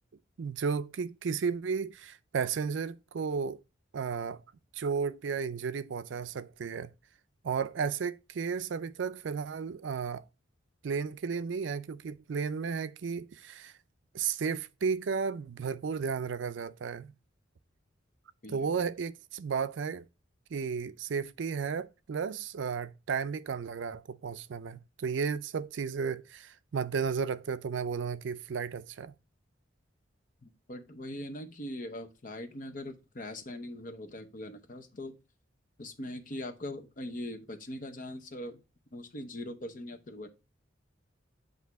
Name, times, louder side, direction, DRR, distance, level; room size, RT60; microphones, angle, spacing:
voice 1, 0.4-3.6 3.9-4.4 4.7-6.9 7.4-10.2 10.8-13.7 14.1-17.1 18.5-20.1 20.5-29.1, right 6 dB, 70° right, 0.4 m, -33 dB
voice 2, 18.4-18.8 30.4-35.2 35.8-38.6 38.9-40.3, left 1 dB, 45° left, 0.8 m, -41 dB
8.2 x 2.7 x 4.5 m
head